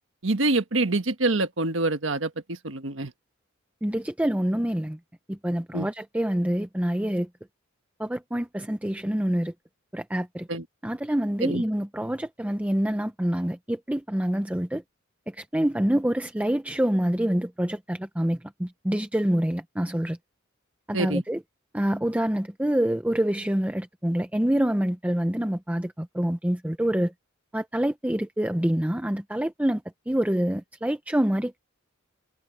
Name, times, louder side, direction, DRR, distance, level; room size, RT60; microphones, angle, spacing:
voice 1, 0.2-3.1 5.7-5.9 10.5-10.6 11.4-11.6 20.9-21.2, right 2 dB, 65° right, 1.5 m, -26 dB
voice 2, 3.8-5.0 5.3-7.3 8.0-9.5 9.9-10.5 10.8-14.8 15.3-20.2 20.9-21.4 21.7-27.1 27.5-29.8 30.1-31.6, right 1 dB, 5° right, 0.7 m, -26 dB
head